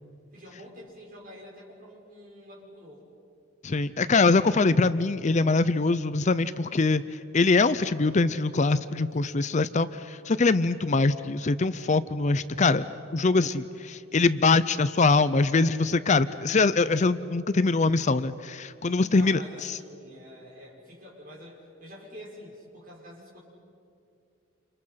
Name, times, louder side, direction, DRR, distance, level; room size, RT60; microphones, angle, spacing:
voice 1, 0.3-3.0 9.2-10.0 16.2-16.7 19.0-23.4, equal, 45° right, -2 dB, 6.4 m, -47 dB
voice 2, 3.6-12.9 13.1-19.8, left 3 dB, 35° left, 14 dB, 0.5 m, -23 dB
29.5 x 29.0 x 5.8 m, 2.7 s
head